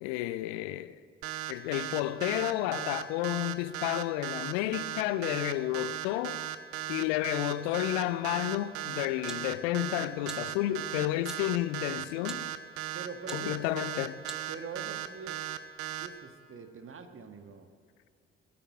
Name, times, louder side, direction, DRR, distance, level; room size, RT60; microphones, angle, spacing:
voice 1, 0.0-1.0 1.5-6.5 6.9-12.5 13.3-14.1, left 15 dB, 70° left, 0.5 m, -31 dB
sound 1, 1.2-16.1, right 12 dB, 75° right, 0.7 m, -37 dB
sound 2, 8.7-15.0, equal, ahead, 1.0 m, -51 dB
voice 2, 12.9-14.1 14.5-15.4 15.9-17.7, right 5 dB, 40° right, 1.5 m, -44 dB
18.5 x 9.0 x 8.6 m
figure-of-eight pair, 40°, 33 cm